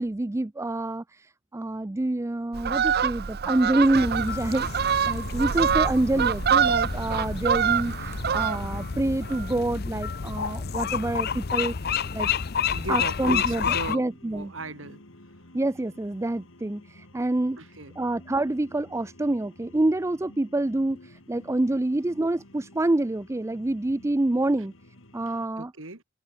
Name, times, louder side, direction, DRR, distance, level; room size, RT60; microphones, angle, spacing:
voice 1, 0.0-12.3 12.9-14.5 15.5-17.6 18.0-24.7 25.1-25.7, right 2 dB, 15° right, 0.4 m, -27 dB
Fowl, 2.5-8.9 9.2-9.5, right 7 dB, 55° right, 0.6 m, -25 dB
sound 1, 3.9-14.0, left 6 dB, 55° left, 0.7 m, -30 dB
sound 2, 8.4-25.5, left 1 dB, 85° left, 3.9 m, -52 dB
voice 2, 12.7-15.0 17.6-17.9 25.3-26.0, right 2 dB, 85° right, 3.1 m, -38 dB
head